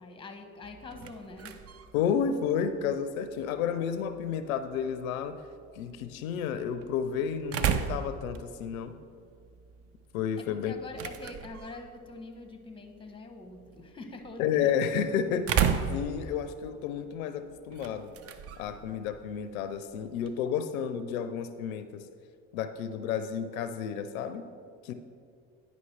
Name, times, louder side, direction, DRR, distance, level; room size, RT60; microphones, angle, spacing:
voice 1, 0.0-1.7 10.4-14.7, left 3 dB, 10° left, 6 dB, 0.8 m, -45 dB
sound 1, 0.6-20.5, right 8 dB, 35° right, 0.5 m, -37 dB
voice 2, 1.9-5.4 5.7-8.9 10.1-10.7 14.4-18.1 18.6-22.0 22.5-24.5 24.8-24.9, left 7 dB, 75° left, 11 dB, 0.5 m, -31 dB
9.6 x 5.3 x 3.2 m, 2.2 s
hypercardioid pair, 65°, 42 cm